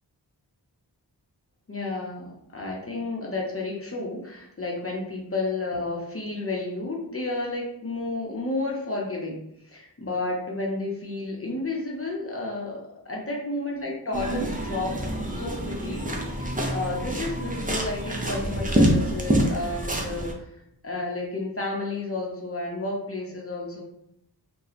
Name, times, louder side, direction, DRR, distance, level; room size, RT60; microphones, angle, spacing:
voice 1, 1.7-15.0 15.3-20.5 20.8-23.8, left 2 dB, 35° left, -2 dB, 0.8 m, -31 dB
sound 1, 14.1-20.3, right 1 dB, 20° right, 0.6 m, -26 dB
2.8 x 2.3 x 4.0 m, 0.77 s
wide cardioid pair, 60°, 40 cm